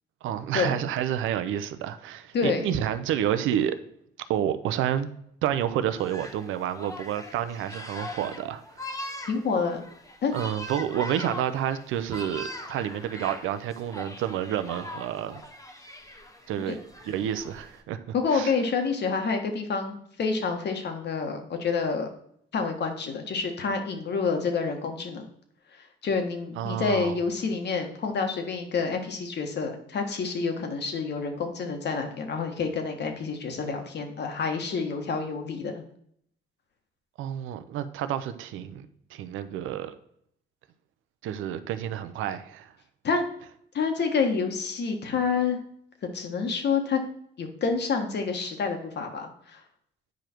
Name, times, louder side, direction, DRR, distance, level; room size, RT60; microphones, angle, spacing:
voice 1, 0.2-3.8 4.3-5.1 5.4-8.9 10.3-15.4 16.5-16.8 17.1-18.0 18.3-18.5 26.6-27.2 37.2-40.0 41.2-42.7, right 10 dB, 90° right, 0.7 m, -29 dB
voice 2, 2.3-2.7 9.2-9.8 10.2-10.3 16.7-16.8 18.1-22.1 22.5-25.3 25.8-35.8 43.0-43.2 43.7-45.6 46.0-47.0 47.4-49.6, left 5 dB, 60° left, 1.6 m, -28 dB
sound 1, 6.0-17.8, left 1 dB, 15° left, 1.4 m, -41 dB
9.2 x 5.0 x 4.5 m
cardioid pair, 90°, 20 cm